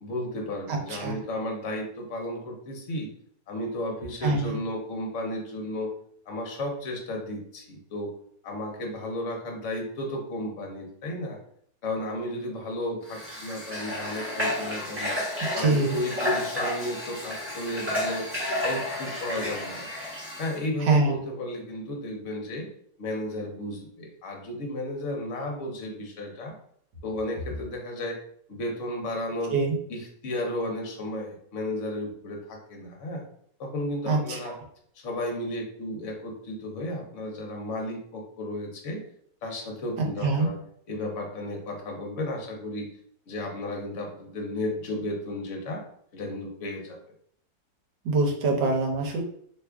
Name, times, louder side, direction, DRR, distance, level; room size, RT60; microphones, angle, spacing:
voice 1, 0.0-3.1 3.5-5.9 6.3-8.1 8.4-11.4 11.8-15.1 15.5-18.3 18.6-19.9 20.4-22.7 23.0-26.5 27.0-28.2 28.5-29.5 29.9-33.2 33.6-34.5 34.9-39.0 39.4-40.6 40.9-42.9 43.3-45.8 46.1-47.0, left 1 dB, 55° left, 1 dB, 1.0 m, -33 dB
voice 2, 4.2-4.6 15.5-16.0 20.8-21.2 29.5-29.7 34.1-34.5 40.0-40.5 48.0-49.2, right 3 dB, 85° right, 2 dB, 1.4 m, -24 dB
Water / Water tap faucet, 13.1-20.6, left 1 dB, 10° right, 0.8 m, -31 dB
3.0 x 2.3 x 3.4 m, 0.64 s
omnidirectional pair, 1.8 m